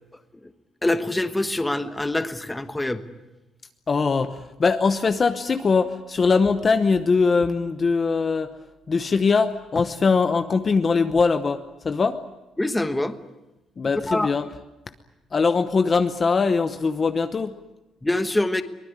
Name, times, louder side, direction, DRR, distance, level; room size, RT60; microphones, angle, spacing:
voice 1, 0.8-3.0 12.6-13.2 14.1-14.3 18.0-18.6, left 1 dB, 10° left, 10 dB, 1.2 m, -24 dB
voice 2, 3.9-8.5 8.9-12.2 13.8-14.5 15.3-17.5, left 4 dB, 30° left, 9 dB, 0.9 m, -21 dB
23.5 x 20.0 x 9.7 m, 1.0 s
cardioid pair, 155°, 0 cm